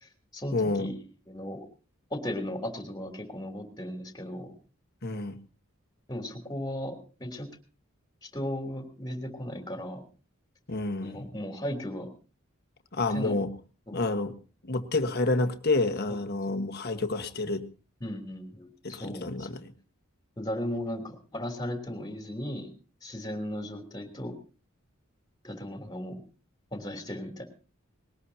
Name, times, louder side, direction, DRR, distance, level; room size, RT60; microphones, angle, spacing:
voice 1, 0.0-1.7 2.1-4.5 6.1-7.5 8.2-10.0 11.0-12.1 13.1-13.4 13.9-14.0 16.1-16.2 16.5-16.6 18.0-19.6 20.4-22.7 23.0-24.3 25.4-26.2 26.7-27.4, left 1 dB, 20° left, 3.3 m, -36 dB
voice 2, 0.5-0.9 5.0-5.4 10.7-11.3 12.9-13.5 13.9-14.3 14.7-17.7 18.8-19.7, left 2 dB, 50° left, 1.5 m, -29 dB
20.5 x 19.5 x 2.9 m
head